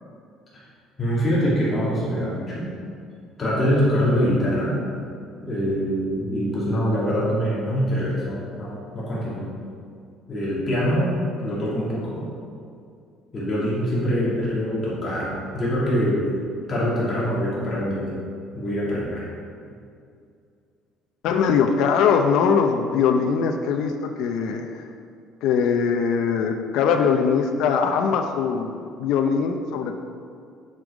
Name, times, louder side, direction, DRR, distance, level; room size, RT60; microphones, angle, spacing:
voice 1, 1.0-2.7 3.4-4.8 5.4-9.5 10.3-12.3 13.3-16.3 16.7-18.2 18.5-19.3, equal, 20° left, -8 dB, 2.3 m, -24 dB
voice 2, 21.2-24.9 25.4-29.9, left 6 dB, 60° left, 4 dB, 0.6 m, -21 dB
9.7 x 5.3 x 4.9 m, 2.3 s
cardioid pair, 175°, 0 cm